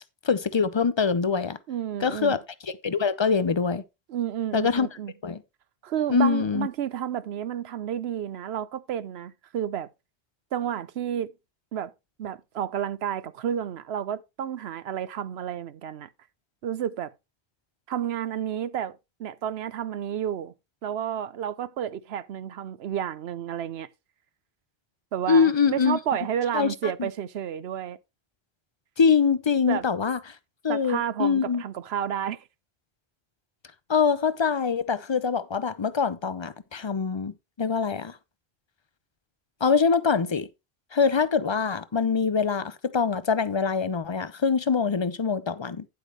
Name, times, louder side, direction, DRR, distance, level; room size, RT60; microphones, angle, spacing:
voice 1, 0.2-1.6 2.0-3.8 4.5-4.9 5.2-5.4 6.1-6.7 25.3-26.0 26.5-27.1 29.0-30.2 30.6-31.6 33.9-38.2 39.6-40.5 40.9-45.9, left 5 dB, 35° left, 0.5 m, -24 dB
voice 2, 1.7-2.4 4.1-5.1 5.8-9.9 10.5-11.3 11.7-11.9 12.2-16.1 16.6-17.1 17.9-20.5 20.8-23.9 25.1-28.0 29.7-29.9 30.7-32.4, right 9 dB, 75° right, 0.9 m, -31 dB
9.9 x 8.0 x 3.2 m
omnidirectional pair, 1.1 m